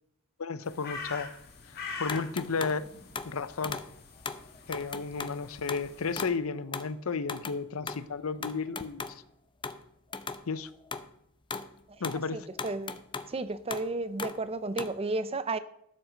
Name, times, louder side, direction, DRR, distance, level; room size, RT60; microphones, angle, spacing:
voice 1, 0.4-1.3 1.7-2.9 3.2-3.8 4.7-9.2 10.5-10.7 12.0-12.5, left 4 dB, 90° left, 0.7 m, -33 dB
sound 1, 0.6-6.2, left 4 dB, 50° left, 2.2 m, -44 dB
sound 2, 2.1-2.8 3.2-3.3 3.6-4.0 4.3-5.4 5.7-6.4 6.7-7.0 7.3-7.6 7.9-9.2 9.6-9.8 10.1-10.5 10.9-11.1 11.5-11.7 12.0-13.3 13.7-15.0, left 4 dB, 25° left, 0.6 m, -38 dB
voice 2, 12.3-13.0 13.3-15.6, right 3 dB, 30° right, 0.6 m, -33 dB
12.0 x 7.9 x 5.1 m
head